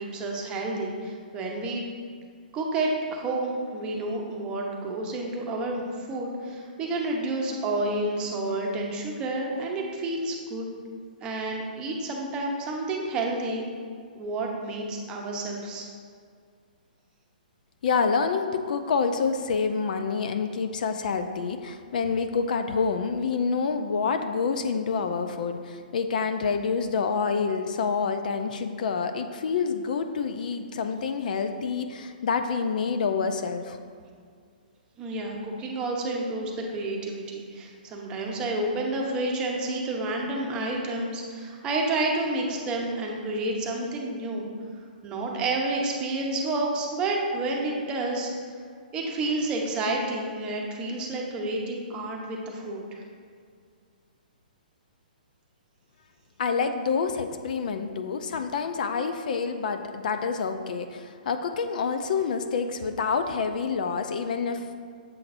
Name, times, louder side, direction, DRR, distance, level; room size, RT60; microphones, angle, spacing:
voice 1, 0.0-1.8 2.5-10.7 11.2-13.6 14.1-15.9 35.0-44.5 45.0-48.3 48.9-52.8, right 2 dB, 20° right, -1 dB, 0.8 m, -30 dB
voice 2, 17.8-33.8 56.4-64.7, left 5 dB, 60° left, 8 dB, 0.4 m, -27 dB
7.5 x 5.7 x 2.6 m, 2.1 s
hypercardioid pair, 150°, 5 cm